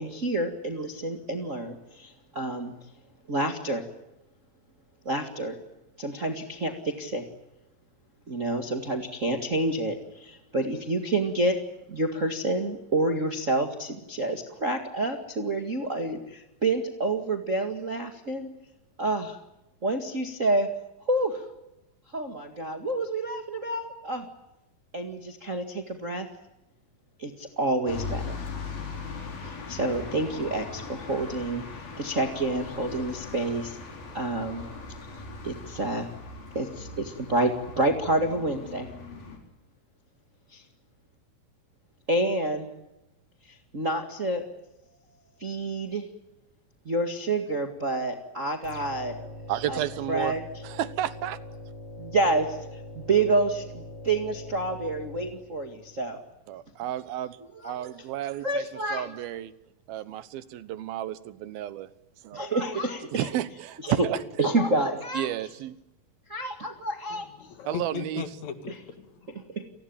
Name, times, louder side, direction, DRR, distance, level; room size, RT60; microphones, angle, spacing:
voice 1, 0.0-2.7 3.3-3.8 5.0-5.6 6.0-7.2 8.3-11.6 11.9-18.5 19.0-19.4 19.8-20.7 21.0-21.5 22.1-24.3 24.9-26.3 27.2-28.4 29.4-31.6 32.0-33.8 34.1-34.7 35.4-36.1 36.5-38.9 40.5-40.6 42.1-42.7 43.4-44.5 45.4-46.1 46.8-49.2 49.7-49.8 50.1-50.4 52.0-56.2 57.6-57.7 58.4-59.1 62.3-63.3 63.8-64.1 64.4-65.3 66.3-67.3 68.7-68.8 69.3-69.6, right 2 dB, 30° right, 1.7 m, -28 dB
sound 1, 27.9-39.4, left 4 dB, 80° left, 6.2 m, -39 dB
sound 2, 48.6-56.1, left 2 dB, 40° left, 5.6 m, -43 dB
voice 2, 49.5-50.4 50.6-51.4 56.5-57.4 57.6-59.5 59.9-61.9 62.2-62.4 63.1-64.2 65.1-65.8 67.6-68.3, right 12 dB, 90° right, 3.1 m, -32 dB
voice 3, 67.1-69.3, left 7 dB, 55° left, 3.1 m, -38 dB
29.5 x 20.0 x 8.7 m
omnidirectional pair, 4.1 m